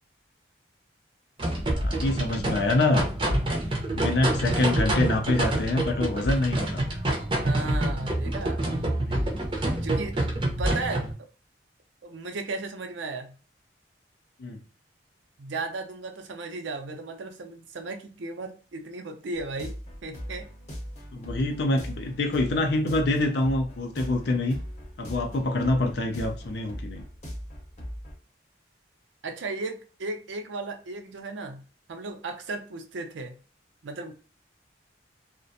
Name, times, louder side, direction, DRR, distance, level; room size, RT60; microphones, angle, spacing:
sound 1, 1.4-11.1, right 1 dB, 25° right, 0.5 m, -27 dB
voice 1, 1.7-3.0 4.0-6.8 14.4-14.6 21.1-24.6 25.0-27.0, left 2 dB, 65° left, 0.4 m, -25 dB
voice 2, 7.4-8.7 9.8-10.3 10.6-11.1 12.0-13.3 15.4-19.8 20.0-20.5 29.2-31.6 31.9-33.3 33.8-34.1, right 3 dB, 85° right, 0.5 m, -35 dB
sound 2, 19.3-28.2, equal, 35° left, 0.8 m, -40 dB
2.4 x 2.1 x 2.6 m
head